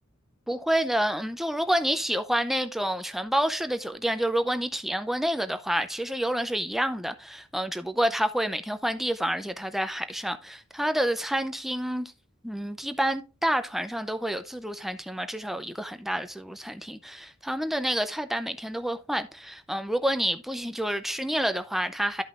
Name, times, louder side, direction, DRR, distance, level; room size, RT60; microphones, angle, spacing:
voice 1, 0.5-12.1 12.4-22.2, right 1 dB, ahead, 0.5 m, -28 dB
12.5 x 5.4 x 2.5 m
head